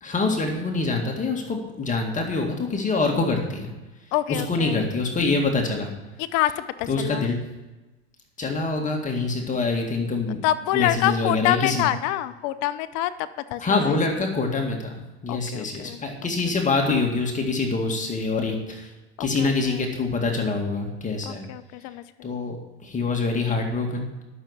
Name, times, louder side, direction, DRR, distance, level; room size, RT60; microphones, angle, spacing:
voice 1, 0.0-3.7 4.3-5.9 6.9-7.4 8.4-10.4 10.7-11.8 13.6-14.9 15.2-18.9 19.2-21.5 22.2-24.1, left 3 dB, 20° left, 1 dB, 2.1 m, -25 dB
voice 2, 4.1-4.8 6.2-7.3 10.4-14.0 15.3-16.0 19.2-19.8 21.3-22.0, left 13 dB, 55° left, 13 dB, 0.8 m, -26 dB
11.5 x 6.6 x 7.2 m, 1.1 s
hypercardioid pair, 105°, 34 cm